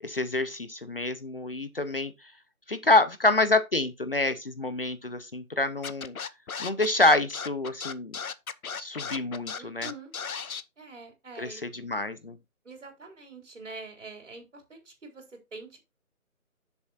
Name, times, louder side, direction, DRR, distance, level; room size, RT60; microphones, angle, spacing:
voice 1, 0.0-2.1 2.7-6.2 6.6-8.2 8.8-9.9 11.4-12.4, left 2 dB, 40° left, 0.7 m, -27 dB
Scratching (performance technique), 5.8-10.6, left 6 dB, 75° left, 1.0 m, -35 dB
voice 2, 9.6-10.1 10.8-11.6 12.6-15.2 15.5-15.8, right 3 dB, 55° right, 3.9 m, -45 dB
10.5 x 7.0 x 2.5 m
hypercardioid pair, 175°, 43 cm